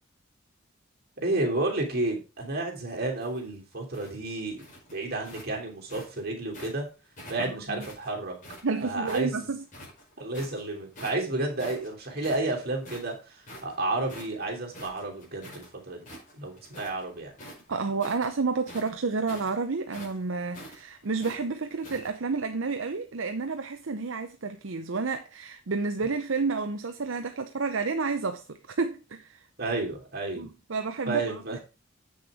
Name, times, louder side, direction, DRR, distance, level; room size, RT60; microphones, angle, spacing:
voice 1, 1.2-4.6 4.9-6.9 7.3-8.4 8.8-9.5 10.2-16.1 16.4-17.3 29.6-30.5 31.1-31.6, right 2 dB, 50° right, 3.1 m, -31 dB
sound 1, 3.0-6.8 7.2-9.3 9.7-10.6 10.9-11.3 11.6-15.7 16.0-17.0 17.3-22.1, equal, 40° left, 5.2 m, -46 dB
voice 2, 7.5-7.9 8.6-9.6 17.7-29.5 30.4-31.6, right 4 dB, 70° right, 0.7 m, -30 dB
8.0 x 6.5 x 4.9 m
head